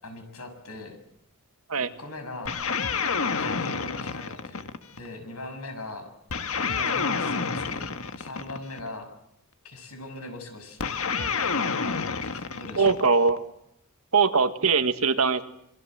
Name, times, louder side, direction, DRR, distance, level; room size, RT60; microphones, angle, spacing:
voice 1, 0.0-1.0 1.7-2.6 3.4-6.1 6.8-9.1 9.6-11.0 12.2-13.0, left 2 dB, 85° left, 7 dB, 6.9 m, -40 dB
sound 1, 2.5-5.1 6.3-8.9 10.8-13.4, left 5 dB, 65° left, 1.6 m, -29 dB
voice 2, 12.8-13.5 14.1-15.4, right 5 dB, 70° right, 9 dB, 1.9 m, -22 dB
27.5 x 23.0 x 7.7 m, 0.78 s
head